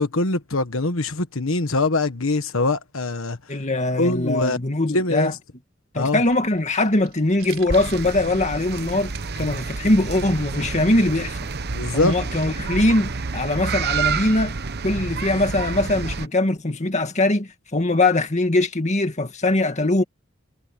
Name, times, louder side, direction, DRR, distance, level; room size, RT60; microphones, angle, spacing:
voice 1, 0.0-3.4 4.0-4.6 4.9-5.3 5.9-6.2 11.7-12.2, left 2 dB, 75° left, 1.4 m, -23 dB
voice 2, 3.5-5.3 5.9-9.1 9.4-11.4 11.9-14.6 14.8-20.0, left 2 dB, 35° left, 2.0 m, -21 dB
sound 1, 6.2-13.5, right 1 dB, 70° right, 4.2 m, -41 dB
sound 2, 7.7-16.3, right 5 dB, 55° right, 1.0 m, -29 dB
head